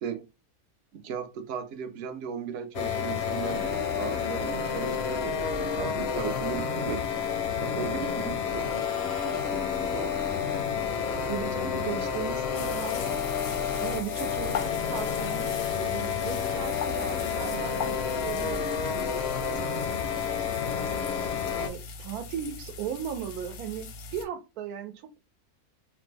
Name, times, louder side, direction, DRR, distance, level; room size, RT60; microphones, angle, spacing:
voice 1, 0.9-7.1 7.6-8.9 9.2-10.1, right 7 dB, 65° right, 0.8 m, -37 dB
sound 1, 2.7-21.7, left 7 dB, 65° left, 0.7 m, -30 dB
voice 2, 11.3-13.2 13.8-19.0 21.6-25.2, right 9 dB, 85° right, 1.1 m, -37 dB
sound 2, 12.5-24.2, left 5 dB, 85° left, 1.1 m, -40 dB
3.2 x 2.1 x 3.2 m
omnidirectional pair, 1.6 m